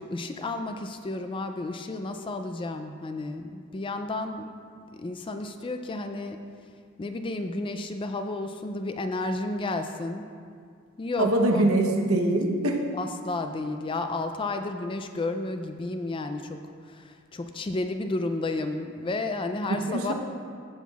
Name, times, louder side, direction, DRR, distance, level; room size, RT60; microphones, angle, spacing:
voice 1, 0.0-4.5 4.9-6.4 7.0-10.3 11.0-11.7 12.9-16.6 16.9-20.1, left 2 dB, 25° left, 7 dB, 0.3 m, -32 dB
voice 2, 11.2-12.8 19.7-20.1, right 1 dB, 70° right, 1 dB, 0.9 m, -23 dB
15.0 x 5.9 x 2.4 m, 2.2 s
head